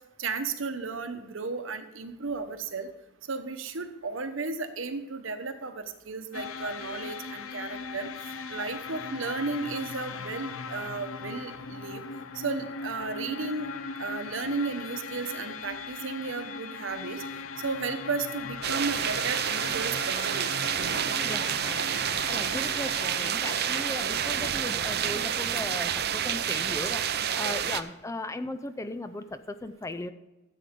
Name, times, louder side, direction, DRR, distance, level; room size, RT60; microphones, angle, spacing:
voice 1, 0.2-2.9 3.3-8.1 8.5-12.0 12.3-13.7 14.0-17.2 17.6-20.5, right 4 dB, 65° right, 8 dB, 1.0 m, -34 dB
sound 1, 6.3-24.5, left 5 dB, 75° left, 0.6 m, -39 dB
sound 2, 18.6-27.8, right 9 dB, 50° right, 0.6 m, -29 dB
voice 2, 21.2-22.0 22.3-30.1, left 1 dB, 15° left, 11 dB, 0.4 m, -37 dB
14.0 x 8.3 x 3.7 m, 1.1 s
head